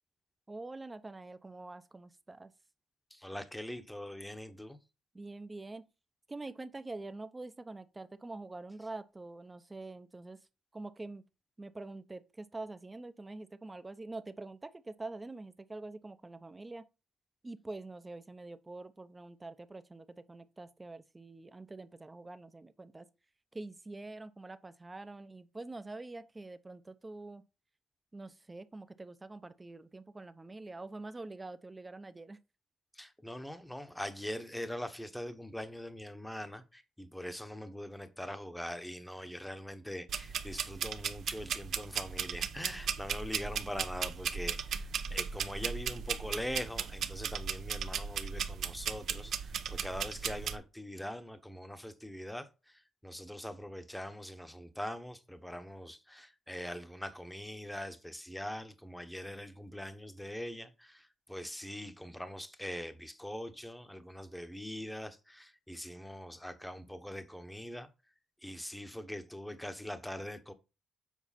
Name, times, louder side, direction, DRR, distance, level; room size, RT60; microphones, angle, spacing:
voice 1, 0.5-2.5 5.1-5.9 6.3-10.4 10.7-11.3 11.6-16.9 17.4-23.1 23.5-27.4 28.1-32.4 44.7-44.8, right 2 dB, 20° right, 0.7 m, -45 dB
voice 2, 3.1-4.8 32.9-67.9 68.4-70.5, equal, 5° left, 1.0 m, -42 dB
sound 1, 40.1-50.6, right 7 dB, 65° right, 0.8 m, -37 dB
7.3 x 4.8 x 4.2 m
cardioid pair, 90°, 0 cm